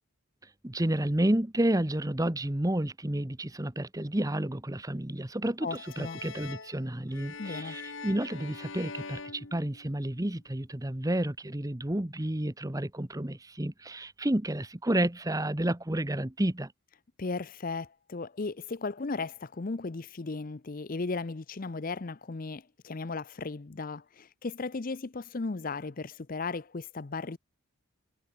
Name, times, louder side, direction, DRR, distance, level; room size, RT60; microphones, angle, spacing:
voice 1, 0.6-16.7, right 1 dB, 15° right, 1.0 m, -30 dB
voice 2, 5.6-6.2 7.4-7.8 17.2-27.4, left 3 dB, 40° left, 0.6 m, -36 dB
sound 1, 5.7-10.3, left 4 dB, 60° left, 2.0 m, -44 dB
head